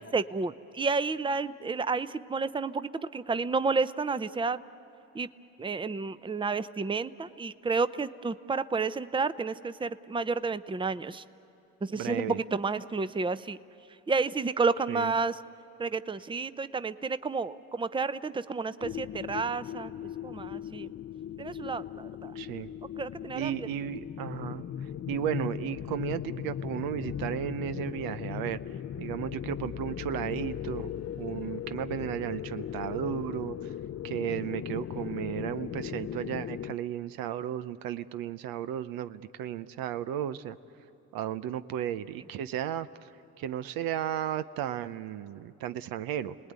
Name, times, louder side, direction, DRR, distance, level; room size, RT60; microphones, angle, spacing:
voice 1, 0.0-4.6 5.1-5.3 5.6-11.2 11.8-13.6 14.1-15.4 15.8-19.9 20.2-20.9 21.4-22.3 23.0-23.5, right 4 dB, 15° right, 14 dB, 0.7 m, -31 dB
voice 2, 11.9-12.4 14.9-15.1 22.3-22.7 23.3-24.6 25.1-28.6 29.0-30.9 31.2-33.7 34.0-40.6 41.1-42.9 43.4-46.5, right 10 dB, 80° right, 12 dB, 0.8 m, -34 dB
sound 1, 18.8-36.7, left 10 dB, 45° left, 0.6 m, -38 dB
29.5 x 19.5 x 9.6 m, 2.9 s
supercardioid pair, 70°, 34 cm